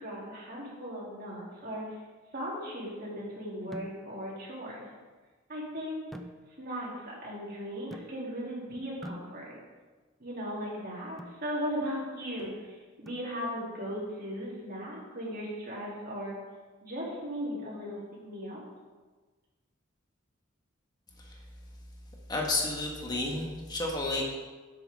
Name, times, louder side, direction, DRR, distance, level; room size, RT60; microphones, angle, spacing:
voice 1, 0.0-2.0 2.3-4.9 5.5-6.0 6.6-9.6 10.2-16.4 16.8-18.6, equal, 50° right, -5 dB, 3.3 m, -37 dB
sound 1, 3.7-4.3 6.1-6.9 7.9-8.5 9.0-9.8 11.2-11.5 13.1-13.7, equal, ahead, 0.4 m, -47 dB
voice 2, 22.3-24.2, left 2 dB, 20° left, -1 dB, 1.7 m, -31 dB
10.5 x 8.1 x 3.7 m, 1.3 s
head